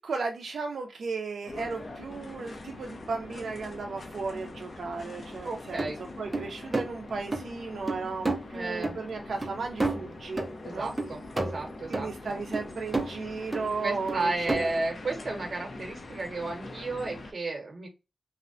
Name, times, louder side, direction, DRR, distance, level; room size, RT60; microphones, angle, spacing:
voice 1, 0.0-10.5 10.7-11.0 11.9-14.8, right 4 dB, 85° right, 0.3 m, -35 dB
sound 1, 1.5-17.3, left 2 dB, 45° left, 0.5 m, -43 dB
voice 2, 5.4-6.0 8.5-9.0 10.6-12.4 13.8-17.9, right 2 dB, 45° right, 0.9 m, -33 dB
sound 2, 5.8-5.9 6.3-6.9 7.3-7.4 7.9-8.4 8.8-8.9 9.4-9.5 9.8-10.6 11.0-12.1 12.5-13.2 13.5-13.7 14.1-14.8, right 2 dB, 15° right, 0.4 m, -30 dB
2.6 x 2.1 x 2.5 m
wide cardioid pair, 180°, 0 cm